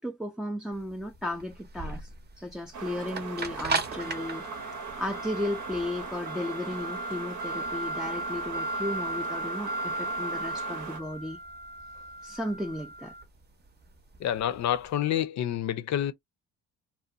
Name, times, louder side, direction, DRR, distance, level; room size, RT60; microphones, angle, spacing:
voice 1, 0.0-4.7 5.0-11.4 12.2-13.1, left 1 dB, ahead, 0.3 m, -35 dB
sound 1, 0.7-14.9, right 2 dB, 35° right, 0.7 m, -36 dB
sound 2, 2.7-11.0, right 5 dB, 75° right, 0.9 m, -40 dB
voice 2, 14.2-16.1, left 11 dB, 65° left, 0.5 m, -28 dB
2.5 x 2.2 x 2.5 m
cardioid pair, 90°, 30 cm